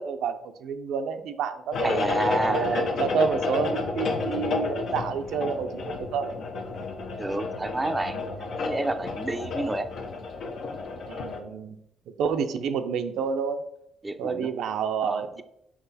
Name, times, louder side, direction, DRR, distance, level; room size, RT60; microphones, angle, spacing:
voice 1, 0.0-2.0 2.5-6.3 11.1-11.8 12.2-13.6 14.2-15.4, right 6 dB, 80° right, 7 dB, 0.6 m, -29 dB
sound 1, 1.7-11.4, left 4 dB, 70° left, 0.9 m, -31 dB
voice 2, 1.8-3.0 7.2-9.9 14.0-14.5 15.0-15.4, right 2 dB, 15° right, 8 dB, 0.5 m, -30 dB
5.8 x 4.8 x 4.1 m, 0.78 s
cardioid pair, 90°, 0 cm